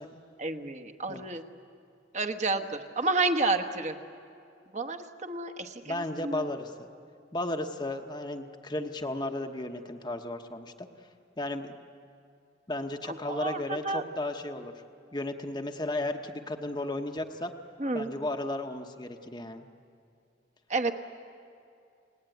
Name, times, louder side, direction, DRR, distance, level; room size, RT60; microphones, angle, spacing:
voice 1, 0.4-1.4 2.1-3.9 4.7-6.5 13.1-14.0 17.8-18.1 20.7-20.9, right 3 dB, 40° right, 7 dB, 1.3 m, -30 dB
voice 2, 5.8-6.9 7.3-10.9 11.4-11.8 12.7-14.7 15.1-17.5 17.9-19.7, left 1 dB, 25° left, 4 dB, 1.1 m, -34 dB
30.0 x 20.0 x 9.2 m, 2.5 s
head